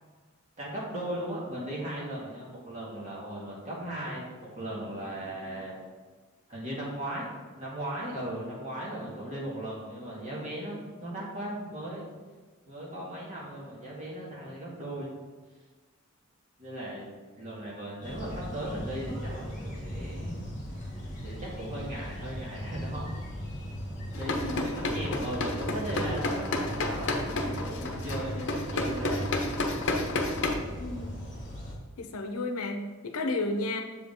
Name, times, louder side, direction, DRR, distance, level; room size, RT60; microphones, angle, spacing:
voice 1, 0.6-5.7 6.5-12.1 12.7-15.1 16.6-17.1 17.4-20.5 21.2-23.1 24.2-29.3, right 1 dB, 35° right, -5 dB, 2.1 m, -37 dB
sound 1, 18.0-31.8, equal, 35° left, 1.9 m, -38 dB
sound 2, 24.1-30.5, left 2 dB, 60° left, 0.8 m, -31 dB
voice 2, 24.3-24.8 30.8-31.1 32.0-33.8, left 2 dB, 85° left, 6 dB, 0.7 m, -32 dB
7.4 x 5.1 x 3.7 m, 1.4 s
head